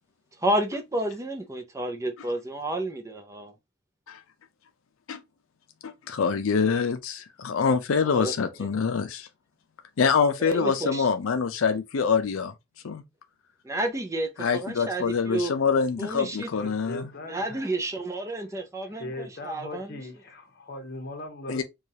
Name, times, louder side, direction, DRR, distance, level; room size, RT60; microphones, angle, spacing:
voice 1, 0.4-3.5 8.0-8.3 8.6-8.7 10.4-11.1 13.6-15.5 16.0-16.5 17.2-20.0, right 1 dB, 15° right, 0.5 m, -30 dB
voice 2, 5.8-9.3 10.0-12.5 12.8-13.0 14.4-17.1 21.5-21.6, left 5 dB, 80° left, 0.5 m, -25 dB
voice 3, 16.5-17.7 18.8-21.6, left 1 dB, 50° left, 1.0 m, -39 dB
4.6 x 2.3 x 2.7 m
head